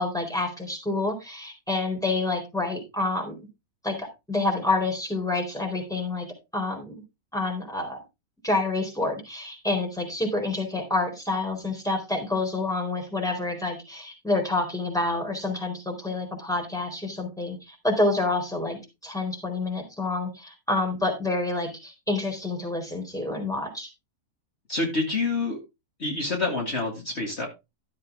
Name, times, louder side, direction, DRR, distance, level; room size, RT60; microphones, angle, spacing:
voice 1, 0.0-3.4 3.8-6.3 6.5-7.0 7.3-8.0 8.4-18.8 19.0-23.9, left 2 dB, ahead, 2 dB, 4.2 m, -28 dB
voice 2, 24.7-25.6 26.0-27.5, left 3 dB, 45° left, 0 dB, 2.3 m, -27 dB
13.5 x 7.6 x 3.5 m, 0.25 s
omnidirectional pair, 1.6 m